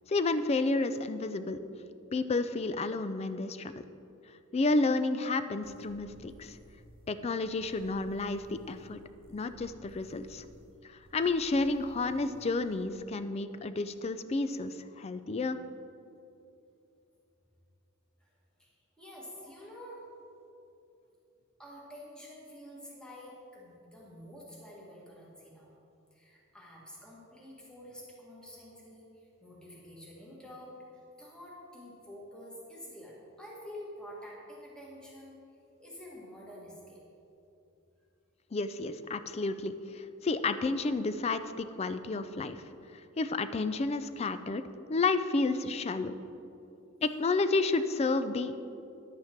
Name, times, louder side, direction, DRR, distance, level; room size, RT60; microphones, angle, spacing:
voice 1, 0.1-1.6 2.1-3.8 4.5-6.6 7.1-9.0 9.3-10.5 11.1-15.6 38.5-42.6 42.9-44.6 44.9-46.2 47.0-48.7, left 3 dB, 30° left, 12 dB, 0.4 m, -31 dB
sound 1, 5.6-12.9, equal, 25° right, 1.2 m, -57 dB
voice 2, 18.6-20.0 21.6-25.7 26.1-35.4 35.8-37.0 46.5-46.7 47.0-47.1, equal, 5° left, -5 dB, 1.6 m, -48 dB
10.5 x 8.5 x 4.5 m, 2.7 s
head